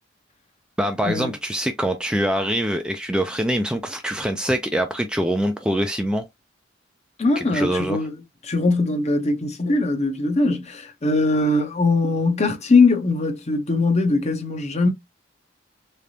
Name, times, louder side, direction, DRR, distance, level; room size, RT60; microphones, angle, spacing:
voice 1, 0.8-6.3 7.4-8.0, equal, 5° right, 0.4 m, -24 dB
voice 2, 7.2-8.2 8.4-14.9, left 3 dB, 35° left, 0.8 m, -21 dB
3.8 x 3.4 x 2.7 m
head